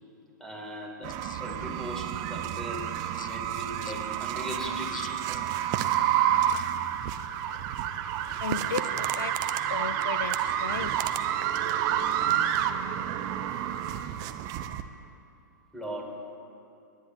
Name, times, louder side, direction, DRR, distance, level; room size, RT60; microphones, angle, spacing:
voice 1, 0.4-5.4 12.6-12.8 15.7-16.3, equal, 5° left, 0 dB, 2.3 m, -39 dB
sound 1, 1.0-14.8, right 10 dB, 35° right, 0.6 m, -29 dB
voice 2, 8.4-10.9, left 6 dB, 75° left, 13 dB, 0.4 m, -36 dB
28.5 x 10.0 x 2.6 m, 2.7 s
figure-of-eight pair, 105°, 11 cm